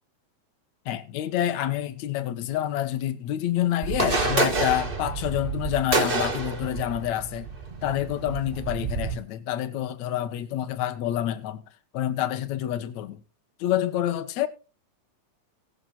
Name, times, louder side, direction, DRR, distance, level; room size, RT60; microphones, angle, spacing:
voice 1, 0.9-7.5 7.8-11.6 11.9-13.2 13.6-14.5, left 12 dB, 70° left, 2.4 m, -28 dB
sound 1, 3.8-9.1, right 3 dB, 30° right, 1.0 m, -28 dB
18.5 x 7.5 x 4.2 m
omnidirectional pair, 3.5 m